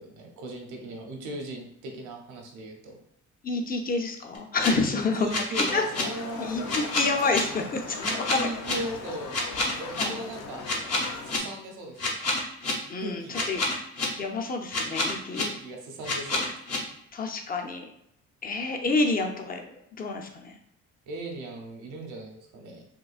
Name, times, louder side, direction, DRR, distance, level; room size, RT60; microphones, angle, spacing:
voice 1, 0.0-3.0 4.7-6.8 7.9-9.4 9.7-10.7 11.2-12.3 13.0-13.5 15.4-16.5 21.1-22.8, right 1 dB, 80° right, 2 dB, 0.8 m, -38 dB
voice 2, 3.4-5.8 6.4-8.8 10.0-10.1 12.9-13.6 14.2-15.5 17.1-17.9 18.4-20.6, left 3 dB, 30° left, 3 dB, 0.6 m, -29 dB
sound 1, 4.3-4.7 5.3-6.0 6.7-7.4 8.0-8.7 9.3-10.0 10.6-11.4 12.0-12.7 13.3-14.0 14.7-15.4 16.0-16.8, left 2 dB, 55° left, 1.0 m, -28 dB
Livestock farm animals working animals, 5.7-11.4, left 4 dB, 80° left, 0.6 m, -39 dB
3.7 x 2.7 x 2.4 m, 0.76 s
cardioid pair, 90°, 30 cm